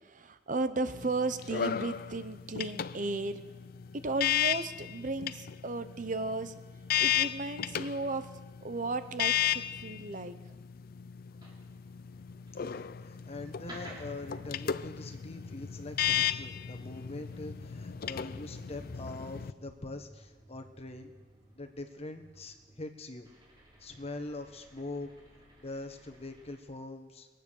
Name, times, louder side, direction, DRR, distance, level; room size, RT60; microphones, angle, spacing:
voice 1, 0.0-3.4 4.0-6.6 7.0-8.3 8.6-10.3, right 3 dB, 50° right, 11 dB, 0.8 m, -35 dB
sound 1, 0.9-19.5, left 10 dB, 55° left, 0.4 m, -35 dB
sound 2, 11.3-26.6, right 1 dB, 25° right, 3.5 m, -56 dB
voice 2, 12.6-21.1 21.5-23.3 23.8-25.1 25.6-27.3, left 2 dB, 35° left, 7 dB, 1.3 m, -43 dB
22.0 x 9.4 x 6.4 m, 1.2 s
head